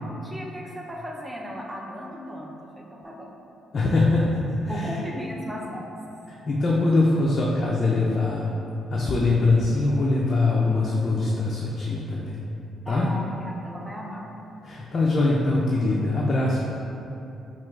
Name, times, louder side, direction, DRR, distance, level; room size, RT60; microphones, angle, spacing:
voice 1, 0.2-3.3 4.7-5.9 12.9-13.3 13.6-14.2, equal, 15° right, -3 dB, 0.5 m, -36 dB
voice 2, 3.7-5.0 6.3-8.5 8.9-12.4 12.9-13.1 14.6-16.6, left 2 dB, 45° left, -4 dB, 0.4 m, -23 dB
4.4 x 2.3 x 2.3 m, 2.8 s
cardioid pair, 90°, 0 cm